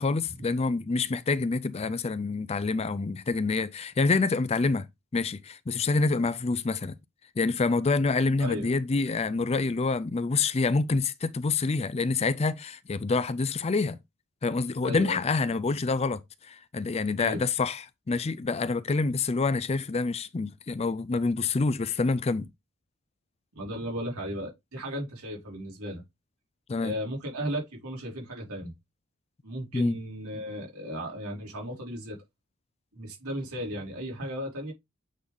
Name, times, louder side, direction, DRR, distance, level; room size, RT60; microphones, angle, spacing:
voice 1, 0.0-4.9 5.1-6.9 7.4-14.0 14.4-22.5 26.7-27.0 29.7-29.9, left 3 dB, 30° left, 0.4 m, -27 dB
voice 2, 8.4-8.7 14.8-15.2 17.2-17.4 23.6-26.0 26.8-28.7 29.4-32.2 32.9-34.7, equal, 85° right, 3.5 m, -35 dB
8.4 x 3.9 x 3.5 m
head